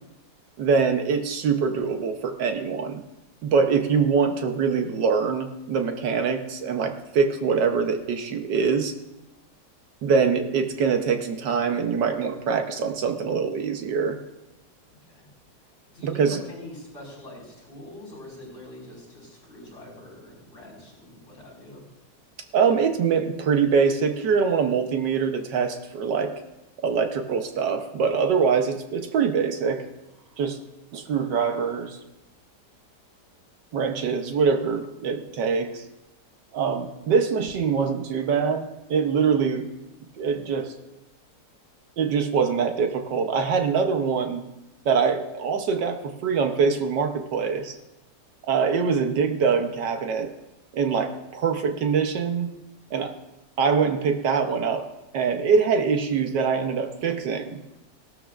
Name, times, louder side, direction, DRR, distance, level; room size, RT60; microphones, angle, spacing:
voice 1, 0.6-3.0 3.4-8.9 10.0-14.2 16.0-16.4 22.5-26.3 26.8-29.8 30.4-30.6 30.9-32.0 33.7-35.8 36.5-39.7 40.2-40.7 42.0-44.4 44.8-47.8 48.5-50.3 50.7-52.5 52.9-53.1 53.6-54.9 55.1-57.6, right 5 dB, 80° right, 6 dB, 1.6 m, -24 dB
voice 2, 15.9-21.8, left 1 dB, 45° left, -2 dB, 5.4 m, -43 dB
17.5 x 12.5 x 2.5 m, 0.93 s
omnidirectional pair, 1.8 m